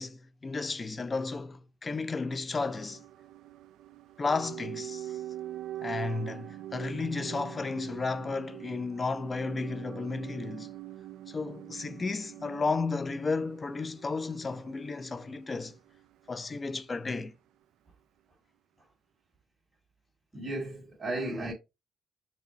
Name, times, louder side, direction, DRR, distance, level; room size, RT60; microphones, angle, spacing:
voice 1, 0.0-3.0 4.2-5.2 5.8-10.7 11.3-15.8 16.3-17.3 21.2-21.5, left 4 dB, 30° left, 0.5 m, -33 dB
sound 1, 2.6-16.7 16.9-17.0, right 13 dB, 85° right, 0.3 m, -44 dB
voice 2, 20.3-21.5, right 2 dB, 25° right, 2.1 m, -34 dB
5.9 x 2.2 x 4.0 m
cardioid pair, 90°, 0 cm